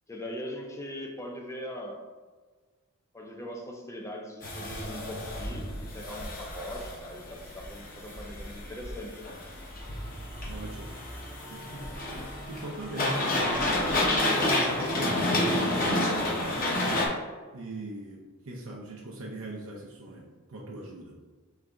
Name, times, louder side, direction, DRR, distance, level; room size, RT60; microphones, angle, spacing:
voice 1, 0.1-2.1 3.1-9.2, equal, 15° left, 1 dB, 0.5 m, -40 dB
sound 1, 4.4-17.1, left 1 dB, 40° left, 0.9 m, -30 dB
voice 2, 10.5-11.0 11.5-12.1 12.5-17.0 17.5-21.2, right 1 dB, 65° right, -2 dB, 0.6 m, -40 dB
4.0 x 3.3 x 3.6 m, 1.4 s
head